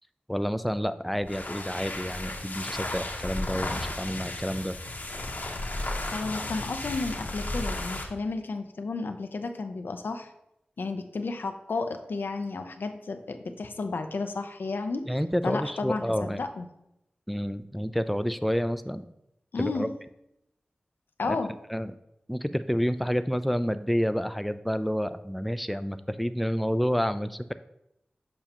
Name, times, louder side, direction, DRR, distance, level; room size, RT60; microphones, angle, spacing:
voice 1, 0.3-4.7 15.1-16.4 17.3-19.1 19.6-19.9 21.2-21.4 21.7-21.9 22.3-27.5, equal, ahead, 11 dB, 0.3 m, -29 dB
sound 1, 1.1-8.1, left 2 dB, 60° left, 0.9 m, -34 dB
voice 2, 6.1-10.3 10.8-15.1 15.4-16.7 19.5-19.9 21.2-21.5, left 3 dB, 90° left, 7 dB, 0.5 m, -32 dB
6.9 x 5.5 x 2.9 m, 0.83 s
wide cardioid pair, 50°, 3 cm